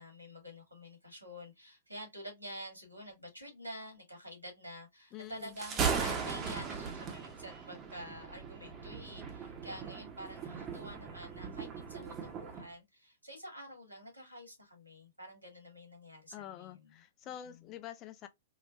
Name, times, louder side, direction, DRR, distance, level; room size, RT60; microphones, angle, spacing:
voice 1, 0.0-16.9 17.2-17.5, equal, 90° right, 1.8 m, -48 dB
voice 2, 5.1-5.6 16.3-18.3, left 11 dB, 30° left, 0.5 m, -47 dB
Thunder, 5.4-12.7, right 6 dB, 25° right, 0.8 m, -38 dB
4.3 x 2.2 x 2.3 m
figure-of-eight pair, 105°, 0 cm